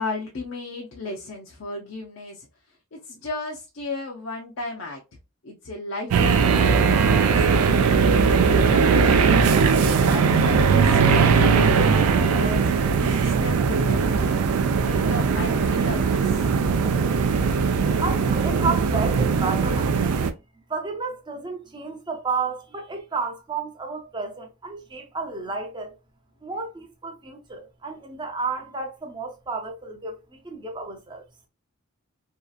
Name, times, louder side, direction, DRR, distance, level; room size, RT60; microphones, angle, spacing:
voice 1, 0.0-2.5 2.9-5.0 5.4-7.9 8.5-14.3 14.8-16.5, left 2 dB, 60° left, 0.5 m, -35 dB
sound 1, 6.1-20.3, right 5 dB, 85° right, 0.4 m, -19 dB
voice 2, 18.0-20.2 20.7-26.0 26.4-31.2, right 4 dB, 20° right, 0.5 m, -31 dB
2.6 x 2.4 x 2.3 m
head